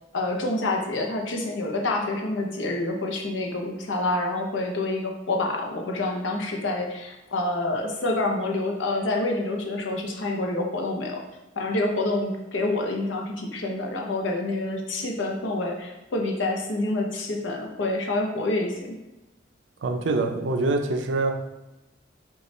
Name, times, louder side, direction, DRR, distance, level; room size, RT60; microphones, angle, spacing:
voice 1, 0.1-11.2 11.6-19.0, left 2 dB, 75° left, 1 dB, 0.7 m, -27 dB
voice 2, 19.8-21.5, right 2 dB, 70° right, 5 dB, 0.5 m, -25 dB
5.2 x 2.4 x 3.1 m, 0.99 s
head